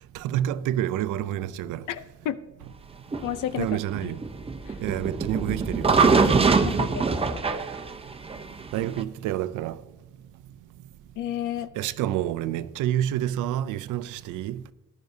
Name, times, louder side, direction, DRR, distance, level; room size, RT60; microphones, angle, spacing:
voice 1, 0.1-1.8 3.6-4.2 4.8-6.4 8.7-9.8 11.8-14.6, right 12 dB, 90° right, 0.5 m, -28 dB
voice 2, 1.9-2.4 3.2-4.2 4.7-4.8 6.6-7.1 7.3-7.4 11.2-11.7, left 11 dB, 85° left, 0.7 m, -32 dB
sound 1, 3.1-9.0, right 4 dB, 20° right, 0.8 m, -23 dB
14.5 x 10.5 x 2.7 m
cardioid pair, 90°, 30 cm